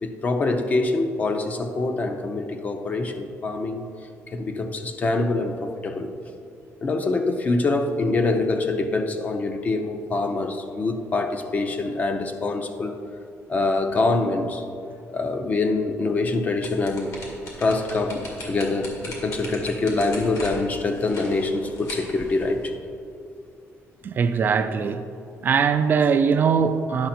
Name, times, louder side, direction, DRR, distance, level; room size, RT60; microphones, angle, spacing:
voice 1, 0.0-3.9 4.3-6.1 6.8-12.9 13.5-14.6 15.1-17.1 17.6-22.7, left 3 dB, 30° left, 0.5 m, -25 dB
sound 1, 16.5-22.7, left 1 dB, 65° left, 2.0 m, -39 dB
voice 2, 24.0-25.0 25.4-27.1, right 6 dB, 40° right, 0.3 m, -21 dB
10.5 x 5.8 x 4.3 m
cardioid pair, 155°, 5 cm